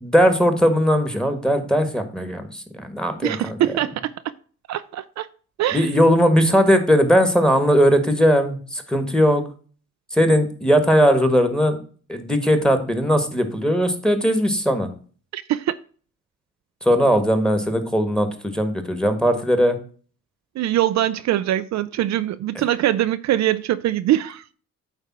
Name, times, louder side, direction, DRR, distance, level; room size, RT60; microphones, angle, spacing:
voice 1, 0.0-3.6 5.7-9.4 10.1-11.8 12.1-14.9 16.8-19.8, equal, ahead, 1.5 m, -19 dB
voice 2, 3.2-4.1 4.7-5.3 5.6-5.9 15.3-15.7 20.6-24.4, right 13 dB, 65° right, 0.5 m, -22 dB
8.9 x 3.4 x 5.9 m
cardioid pair, 90°, 30 cm